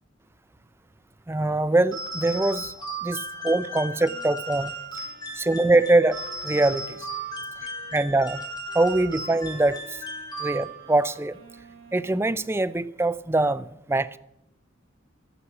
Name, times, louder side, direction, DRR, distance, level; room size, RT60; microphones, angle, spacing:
voice 1, 1.3-2.7 3.0-4.7 5.4-7.0 7.9-8.4 8.7-9.8 10.4-11.4 11.9-14.2, right 2 dB, 10° right, 0.4 m, -23 dB
sound 1, 1.9-11.0, right 1 dB, 20° left, 3.2 m, -36 dB
Wind instrument woodwind instrument, 3.9-12.6, right 1 dB, 60° right, 3.8 m, -49 dB
12.5 x 11.5 x 7.0 m
head